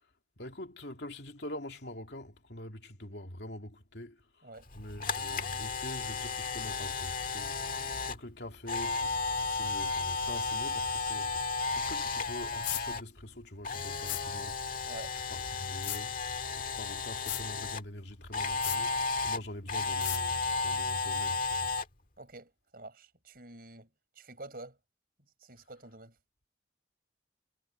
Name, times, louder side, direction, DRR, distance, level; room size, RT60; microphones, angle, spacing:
voice 1, 0.4-9.2 9.5-14.8 15.1-16.2 16.5-21.7, left 1 dB, 70° left, 2.7 m, -44 dB
Camera, 4.7-13.0 13.3-17.8 18.3-21.8, left 4 dB, 50° left, 1.7 m, -33 dB
sound 1, 12.6-12.8 14.1-14.2 15.8-16.0 17.3-17.4 18.6-18.8 20.0-20.2, left 17 dB, 85° left, 0.5 m, -35 dB
voice 2, 14.8-15.2 22.2-24.8 25.4-26.2, right 2 dB, 50° right, 7.0 m, -48 dB
head